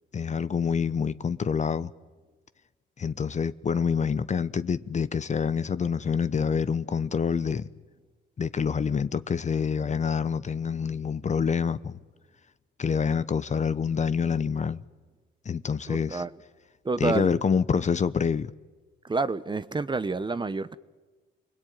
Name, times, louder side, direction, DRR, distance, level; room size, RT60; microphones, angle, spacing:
voice 1, 0.1-1.9 3.0-7.7 8.4-12.0 12.8-14.8 15.4-16.2 17.0-18.5, left 6 dB, 35° left, 0.9 m, -27 dB
voice 2, 15.9-16.3 16.8-17.4 19.0-20.7, right 3 dB, 25° right, 1.0 m, -28 dB
30.0 x 20.5 x 9.3 m
cardioid pair, 90°, 20 cm